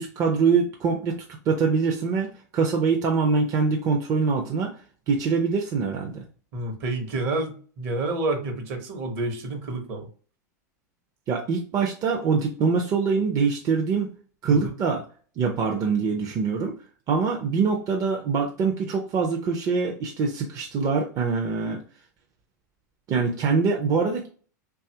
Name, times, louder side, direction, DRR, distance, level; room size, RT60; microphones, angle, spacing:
voice 1, 0.0-4.8 5.1-6.2 11.3-14.1 14.4-15.0 15.4-16.7 17.1-21.8 23.1-24.3, right 5 dB, 35° right, 1 dB, 0.5 m, -24 dB
voice 2, 6.5-10.1 14.5-14.7, right 2 dB, 55° right, 5 dB, 0.9 m, -29 dB
2.7 x 2.4 x 2.7 m, 0.41 s
hypercardioid pair, 105°, 10 cm